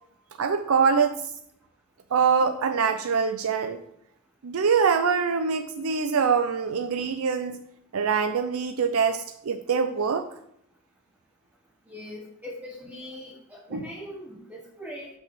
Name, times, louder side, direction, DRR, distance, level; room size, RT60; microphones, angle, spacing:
voice 1, 0.4-1.2 2.1-3.8 4.4-7.6 7.9-10.3 13.7-13.8, right 6 dB, 70° right, 8 dB, 0.5 m, -24 dB
voice 2, 11.9-15.1, equal, 5° right, -2 dB, 0.9 m, -41 dB
6.0 x 5.6 x 6.9 m, 0.74 s
head